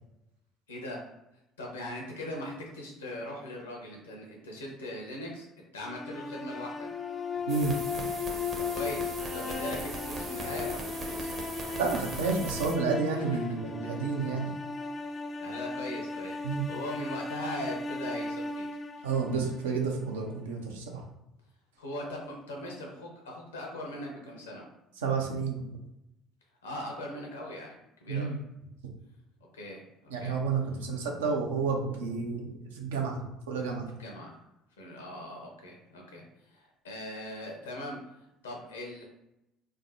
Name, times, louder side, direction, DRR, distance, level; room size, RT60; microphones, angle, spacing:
voice 1, 0.7-1.1 1.6-5.5 5.7-6.8 8.5-11.3 13.1-13.3 15.1-18.7 21.8-24.7 26.6-28.3 29.5-30.3 34.0-34.3 34.8-39.0, left 1 dB, 85° left, -1 dB, 0.8 m, -40 dB
sound 1, 5.8-20.0, left 4 dB, 35° left, 0.3 m, -36 dB
sound 2, 7.5-12.7, right 3 dB, 40° right, 0.7 m, -40 dB
voice 2, 11.8-14.5 16.4-16.6 19.0-21.0 25.0-25.6 28.1-28.4 30.1-34.0, right 4 dB, 80° right, 1 dB, 0.6 m, -30 dB
3.4 x 2.0 x 2.6 m, 0.89 s
hypercardioid pair, 60°, 0 cm